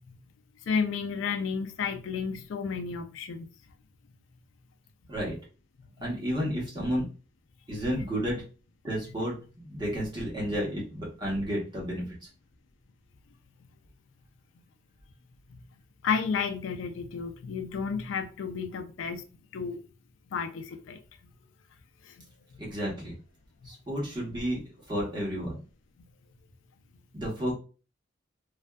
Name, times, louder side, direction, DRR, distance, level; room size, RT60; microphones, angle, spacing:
voice 1, 0.7-3.5 16.0-19.2 19.5-19.8 20.3-21.0 22.0-22.2, left 5 dB, 90° left, 0.4 m, -32 dB
voice 2, 6.0-7.1 7.7-8.4 8.8-9.4 9.6-12.1 22.6-23.1 23.6-24.6 24.9-25.6 27.1-27.5, equal, 25° right, 1.0 m, -31 dB
2.5 x 2.3 x 2.2 m
head